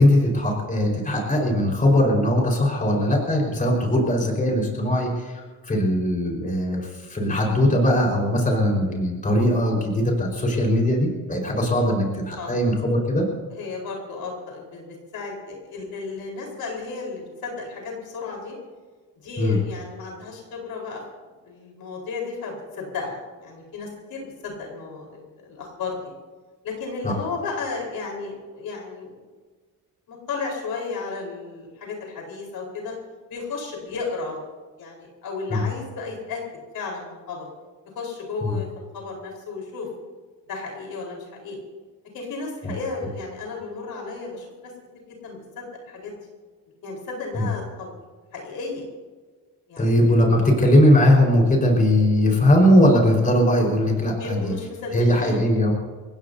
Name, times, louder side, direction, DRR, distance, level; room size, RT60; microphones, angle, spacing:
voice 1, 0.0-13.3 19.4-19.6 27.0-27.1 35.5-35.6 38.4-38.6 42.6-42.7 47.3-47.5 49.8-54.5 54.9-55.7, left 1 dB, 20° left, -1 dB, 5.0 m, -20 dB
voice 2, 12.4-12.7 13.5-18.5 19.1-21.0 21.4-26.0 26.6-29.3 30.1-32.9 33.3-34.4 34.8-36.4 36.7-37.5 37.9-38.7 38.9-39.9 40.5-41.6 42.1-46.2 46.8-47.9 48.3-48.9 49.7-50.1 54.1-55.5, left 4 dB, 75° left, 0 dB, 4.6 m, -34 dB
30.0 x 16.0 x 2.8 m, 1.4 s
cardioid pair, 135°, 37 cm